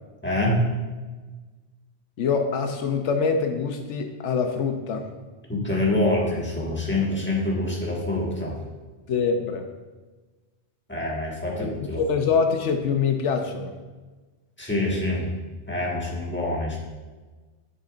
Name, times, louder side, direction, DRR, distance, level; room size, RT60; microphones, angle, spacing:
voice 1, 0.2-0.6 5.5-8.5 10.9-12.0 14.6-15.3 15.7-16.8, left 1 dB, 10° left, -4 dB, 1.5 m, -25 dB
voice 2, 2.2-5.1 9.1-9.6 11.6-11.7 12.0-13.7, left 5 dB, 85° left, 5 dB, 1.0 m, -24 dB
11.0 x 6.5 x 2.5 m, 1.3 s
omnidirectional pair, 1.2 m